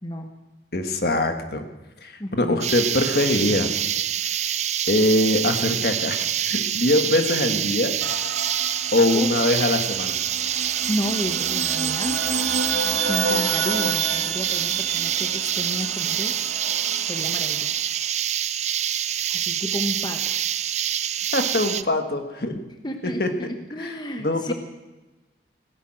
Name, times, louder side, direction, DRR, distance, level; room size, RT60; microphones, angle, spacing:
voice 1, 0.0-0.3 2.2-2.7 9.1-9.3 10.9-12.2 13.1-16.4 17.0-17.9 19.3-20.4 22.5-24.5, equal, 25° left, 5 dB, 1.1 m, -32 dB
voice 2, 0.7-1.6 2.0-3.7 4.2-4.3 4.9-8.0 8.9-10.2 21.3-22.5 23.2-23.3 23.8-23.9 24.2-24.5, left 2 dB, 55° left, 7 dB, 1.5 m, -22 dB
sound 1, 2.6-21.8, right 10 dB, 40° right, 0.4 m, -26 dB
sound 2, 8.0-17.7, right 4 dB, 80° right, 1.7 m, -30 dB
17.5 x 10.5 x 7.6 m, 1.1 s
head